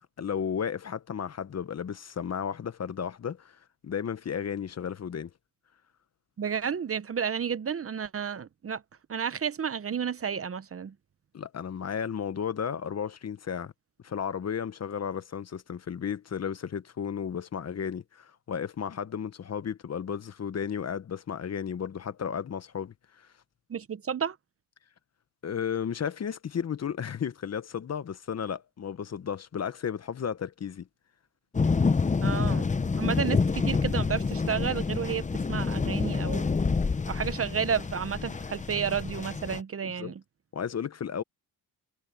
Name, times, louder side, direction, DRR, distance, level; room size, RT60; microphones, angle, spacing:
voice 1, 0.2-3.6 3.8-5.3 11.3-13.7 14.0-23.3 25.4-30.9 39.8-40.1 40.5-41.2, left 7 dB, 40° left, 1.0 m, -33 dB
voice 2, 6.4-8.8 9.1-10.9 23.7-24.4 32.2-32.7 33.0-36.5 37.1-40.2, right 7 dB, 35° right, 0.8 m, -31 dB
sound 1, 31.5-39.6, left 4 dB, 20° left, 0.7 m, -28 dB
cardioid pair, 100°, 40 cm